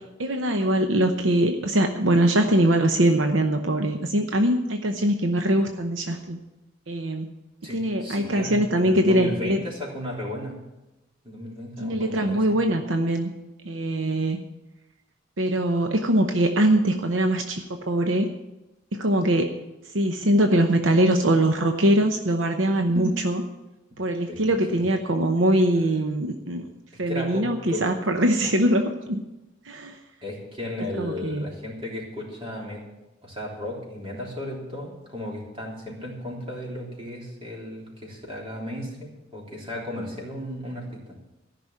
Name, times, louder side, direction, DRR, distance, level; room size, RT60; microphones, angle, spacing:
voice 1, 0.2-6.4 6.9-7.3 7.7-9.6 11.8-13.3 13.7-14.4 15.4-18.3 18.9-19.5 19.9-23.4 24.0-26.7 27.0-29.2 29.7-30.0 31.0-31.5, right 1 dB, 75° right, 5 dB, 0.9 m, -22 dB
voice 2, 7.6-10.6 11.2-12.7 22.9-23.1 24.3-24.5 27.1-27.8 30.2-32.8 33.2-41.2, left 1 dB, 30° right, -3 dB, 3.5 m, -34 dB
14.0 x 6.0 x 9.2 m, 1.0 s
head